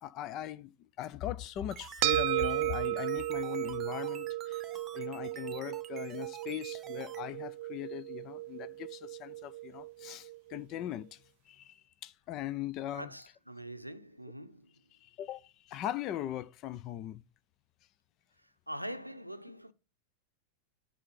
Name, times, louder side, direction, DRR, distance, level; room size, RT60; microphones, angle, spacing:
voice 1, 0.0-13.1 14.9-17.2, left 13 dB, 35° left, 0.5 m, -40 dB
sound 1, 1.5-7.2, right 8 dB, 25° right, 0.8 m, -49 dB
sound 2, 2.0-10.6, right 17 dB, 50° right, 0.4 m, -35 dB
voice 2, 12.9-14.7 18.7-19.7, right 1 dB, 90° right, 0.6 m, -43 dB
9.9 x 4.3 x 7.3 m
figure-of-eight pair, 90°, 0 cm